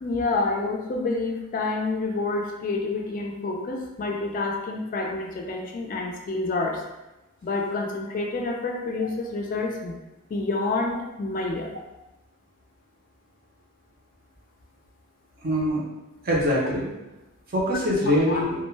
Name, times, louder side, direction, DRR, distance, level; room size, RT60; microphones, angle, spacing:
voice 1, 0.0-6.8 7.4-10.0 10.3-11.8 18.3-18.4, left 3 dB, 40° left, 1 dB, 0.3 m, -28 dB
voice 2, 15.4-15.8 16.2-16.9 17.5-18.5, equal, 45° right, -4 dB, 0.7 m, -23 dB
2.2 x 2.1 x 3.1 m, 1.0 s
head